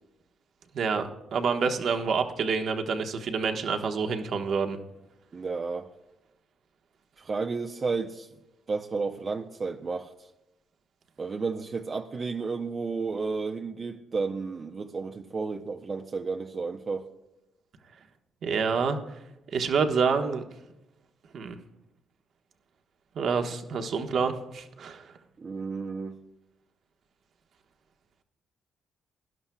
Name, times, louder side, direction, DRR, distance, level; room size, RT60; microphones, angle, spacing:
voice 1, 0.7-4.8 18.4-19.0 19.5-20.4 21.3-21.6 23.1-25.1, right 5 dB, 65° right, 1.3 m, -27 dB
voice 2, 5.3-5.9 7.2-8.3 8.7-10.3 11.2-17.1 25.4-26.2, right 4 dB, 40° right, 0.7 m, -32 dB
18.5 x 11.5 x 2.3 m
cardioid pair, 90°, 0 cm